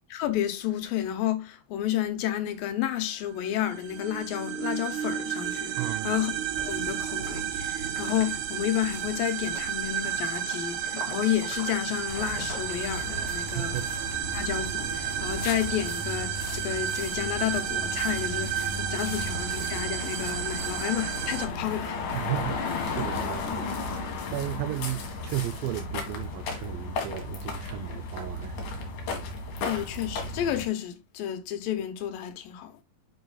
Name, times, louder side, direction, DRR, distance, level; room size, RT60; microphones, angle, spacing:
voice 1, 0.1-13.8 14.3-22.0 29.6-32.8, left 11 dB, 85° left, 2.8 m, -31 dB
sound 1, 3.4-21.5, right 9 dB, 70° right, 2.2 m, -32 dB
voice 2, 5.8-6.3 13.5-14.3 18.9-19.2 22.1-23.7 24.3-28.9, right 14 dB, 90° right, 2.3 m, -35 dB
sound 2, 6.6-13.9, left 2 dB, 40° left, 2.9 m, -46 dB
sound 3, 12.1-30.7, left 3 dB, 65° left, 3.1 m, -35 dB
10.5 x 5.4 x 2.3 m
omnidirectional pair, 3.9 m